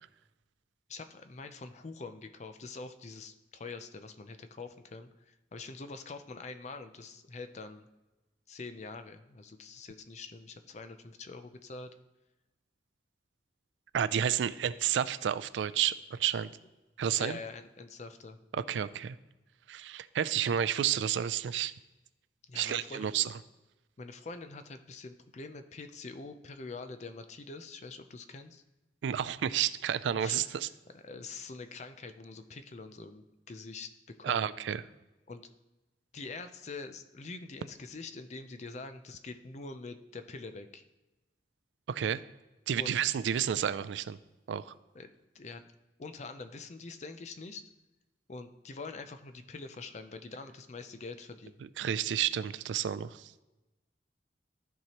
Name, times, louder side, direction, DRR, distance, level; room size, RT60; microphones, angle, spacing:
voice 1, 0.9-7.9 8.5-11.9 17.2-18.4 22.5-23.2 24.0-28.6 30.2-30.7 30.9-34.5 35.3-35.5 36.1-40.8 42.8-42.9 44.9-45.1 45.3-45.6 46.0-47.6 48.3-51.6, left 3 dB, 40° left, 9 dB, 0.5 m, -45 dB
voice 2, 13.9-16.5 17.0-17.4 18.7-19.2 19.7-21.7 22.5-23.3 29.0-30.7 34.2-34.8 41.9-42.2 42.7-44.2 44.5-44.7 51.8-53.2, right 9 dB, 85° right, 15 dB, 0.3 m, -30 dB
13.5 x 4.6 x 2.9 m, 1.1 s
head